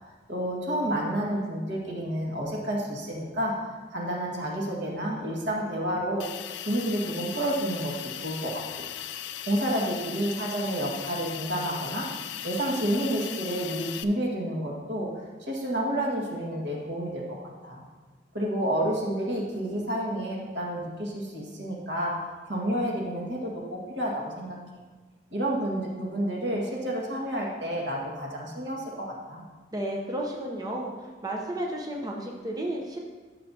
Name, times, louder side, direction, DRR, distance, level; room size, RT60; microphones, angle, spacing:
voice 1, 0.3-3.5 3.9-6.3 6.6-8.8 9.5-12.1 12.4-17.4 17.6-17.8 18.3-24.6 25.3-29.4, right 1 dB, 80° right, -3 dB, 1.8 m, -30 dB
Hiss, 6.2-14.0, left 10 dB, 75° left, 0.4 m, -38 dB
voice 2, 29.7-30.9 31.2-33.0, right 1 dB, 20° right, -1 dB, 0.7 m, -32 dB
12.0 x 6.8 x 2.8 m, 1.4 s
head